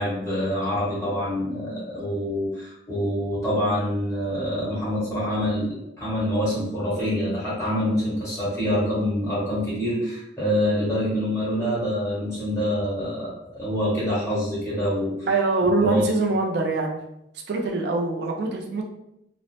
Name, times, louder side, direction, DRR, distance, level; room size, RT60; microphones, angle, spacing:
voice 1, 0.0-15.3 15.8-16.1, equal, 15° left, -9 dB, 1.4 m, -26 dB
voice 2, 15.3-17.0 17.5-18.8, right 3 dB, 70° right, 1 dB, 0.4 m, -23 dB
2.9 x 2.0 x 2.8 m, 0.83 s
head